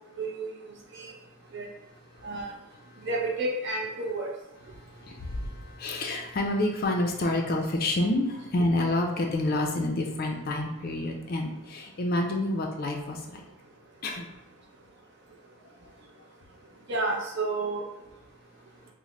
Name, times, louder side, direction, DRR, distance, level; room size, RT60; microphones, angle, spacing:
voice 1, 0.2-0.5 0.9-1.1 1.5-1.7 2.2-2.5 3.0-4.3 16.9-17.8, right 2 dB, 50° right, 0 dB, 0.6 m, -30 dB
voice 2, 4.8-13.4 14.0-14.3, left 1 dB, 40° left, 2 dB, 0.4 m, -28 dB
3.2 x 2.0 x 3.7 m, 0.97 s
head